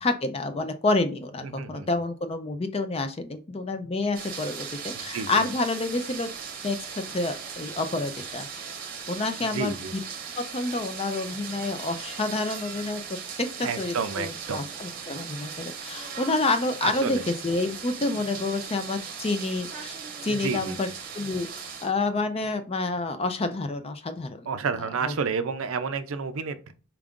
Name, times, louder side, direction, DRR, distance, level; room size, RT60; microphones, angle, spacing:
voice 1, 0.0-6.3 6.6-8.5 9.1-10.0 10.4-13.0 13.4-20.0 20.2-20.9 21.1-24.5 25.0-25.1, left 2 dB, 25° left, 9 dB, 0.4 m, -28 dB
voice 2, 1.4-1.9 4.9-5.4 9.4-9.9 13.6-14.6 16.8-17.2 20.3-20.8 24.5-26.7, right 5 dB, 65° right, 11 dB, 0.5 m, -30 dB
sound 1, 4.1-21.9, right 6 dB, 40° right, 0.8 m, -38 dB
4.6 x 2.5 x 3.5 m, 0.35 s
head